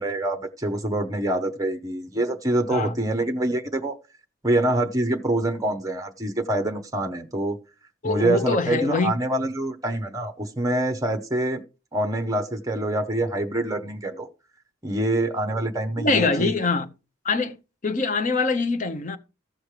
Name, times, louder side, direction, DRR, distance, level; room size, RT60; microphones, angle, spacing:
voice 1, 0.0-4.0 4.4-7.6 8.0-11.6 11.9-14.3 14.8-16.5, right 1 dB, 15° right, 0.8 m, -25 dB
voice 2, 8.0-9.1 16.0-16.8 17.2-17.6 17.8-19.2, left 3 dB, 35° left, 0.8 m, -24 dB
15.0 x 6.3 x 3.2 m
head